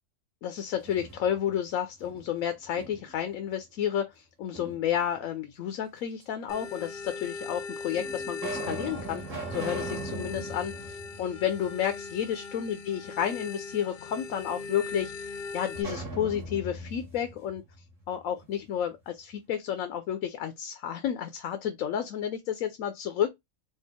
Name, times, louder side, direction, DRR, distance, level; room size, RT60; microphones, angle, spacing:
voice 1, 0.4-17.6 18.1-23.3, left 9 dB, 80° left, 1.0 m, -31 dB
sound 1, 0.6-1.6 2.0-3.3 4.5-5.3 6.2-6.3 7.2-7.3 7.9-12.0 12.3-12.4 15.7-18.5, right 3 dB, 70° right, 1.8 m, -40 dB
sound 2, 6.5-15.8, left 4 dB, 55° left, 0.5 m, -39 dB
4.5 x 2.5 x 3.5 m
omnidirectional pair, 1.4 m